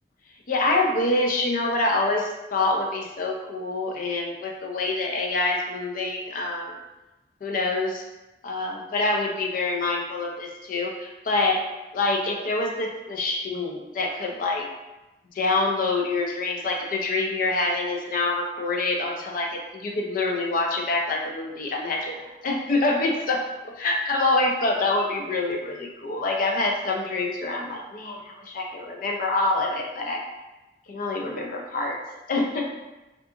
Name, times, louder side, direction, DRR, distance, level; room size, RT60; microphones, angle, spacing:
voice 1, 0.5-6.7 7.4-8.0 8.4-11.6 11.9-14.7 15.4-23.4 23.8-30.2 30.9-32.0 32.3-32.7, left 2 dB, 50° left, 1 dB, 0.4 m, -26 dB
2.4 x 2.3 x 2.7 m, 1.0 s
head